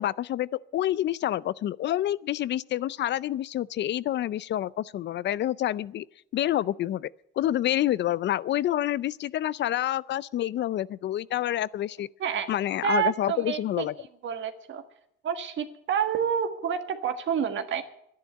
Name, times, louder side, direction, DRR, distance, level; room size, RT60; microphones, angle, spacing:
voice 1, 0.0-6.1 6.3-7.1 7.4-12.1 12.5-13.9, left 12 dB, 60° left, 0.4 m, -28 dB
voice 2, 12.8-13.8 14.2-14.8 15.2-17.8, right 8 dB, 70° right, 1.6 m, -28 dB
11.5 x 10.0 x 9.3 m
cardioid pair, 90°, 20 cm